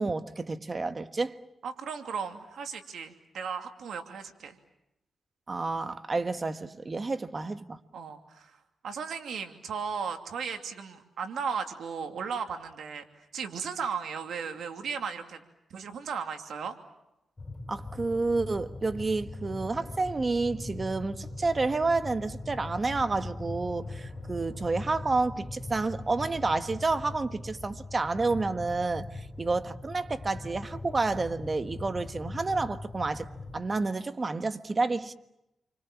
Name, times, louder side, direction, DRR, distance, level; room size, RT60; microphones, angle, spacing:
voice 1, 0.0-1.4 5.5-7.8 17.7-33.3 33.5-35.1, right 3 dB, 35° right, 1.4 m, -30 dB
voice 2, 1.6-4.6 7.9-8.5 8.8-13.0 13.3-15.4 15.7-16.8, right 6 dB, 80° right, 2.7 m, -36 dB
sound 1, 17.4-33.6, left 2 dB, 35° left, 5.8 m, -41 dB
29.5 x 25.0 x 7.4 m
cardioid pair, 80°, 0 cm